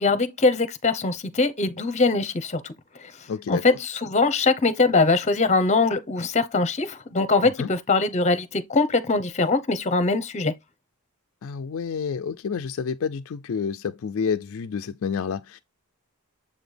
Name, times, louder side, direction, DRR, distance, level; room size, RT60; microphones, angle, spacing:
voice 1, 0.0-2.7 3.0-3.1 3.5-10.5, left 3 dB, 30° left, 0.8 m, -22 dB
voice 2, 3.3-3.6 7.6-7.7 11.4-15.6, left 6 dB, 60° left, 0.4 m, -29 dB
7.4 x 3.9 x 3.3 m
head